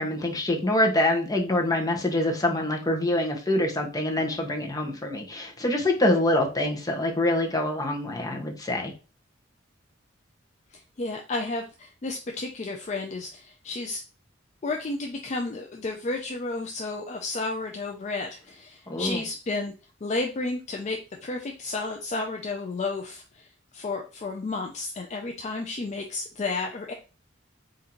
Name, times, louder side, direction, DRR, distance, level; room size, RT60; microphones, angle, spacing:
voice 1, 0.0-8.9 18.9-19.2, left 1 dB, 20° left, 1 dB, 0.8 m, -25 dB
voice 2, 10.7-14.0 14.6-19.7 20.0-26.9, left 3 dB, 35° left, 2 dB, 0.4 m, -32 dB
3.8 x 2.7 x 4.3 m, 0.34 s
head